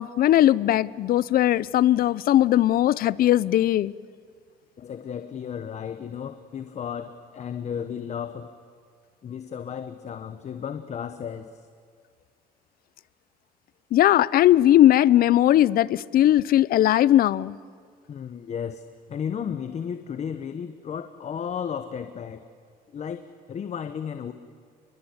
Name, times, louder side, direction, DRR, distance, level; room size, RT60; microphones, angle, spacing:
voice 1, 0.0-3.9 13.9-17.5, left 13 dB, 60° left, 20 dB, 0.7 m, -19 dB
voice 2, 4.8-8.5 9.2-11.6 18.1-18.8 19.1-22.4 22.9-23.2 23.5-24.3, left 7 dB, 40° left, 9 dB, 1.2 m, -34 dB
28.5 x 22.5 x 8.0 m, 2.2 s
cardioid pair, 110°, 17 cm